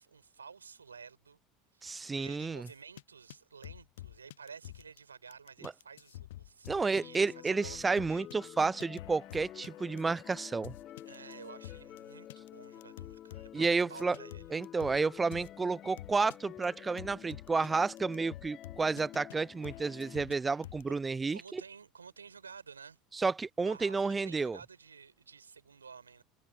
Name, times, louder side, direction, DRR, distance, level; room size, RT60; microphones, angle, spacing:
voice 1, 0.0-1.4 1.7-8.3 11.0-14.5 20.9-21.0 21.3-23.0 23.6-26.2, right 6 dB, 85° right, 4.4 m, -52 dB
voice 2, 1.8-2.7 5.6-5.7 6.7-10.7 13.5-14.2 14.5-21.6 23.1-24.6, right 4 dB, 20° right, 0.5 m, -31 dB
sound 1, 2.6-3.0 3.3-3.4 3.6-5.0 5.3-12.0 12.3-12.5 12.8-15.0 15.3-15.5 16.0-16.4 16.6-16.7 17.0-17.7 18.0-19.3 19.6-20.9, left 15 dB, 70° left, 0.5 m, -48 dB
sound 2, 6.9-20.2, left 12 dB, 45° left, 1.7 m, -50 dB
figure-of-eight pair, 70°, 0 cm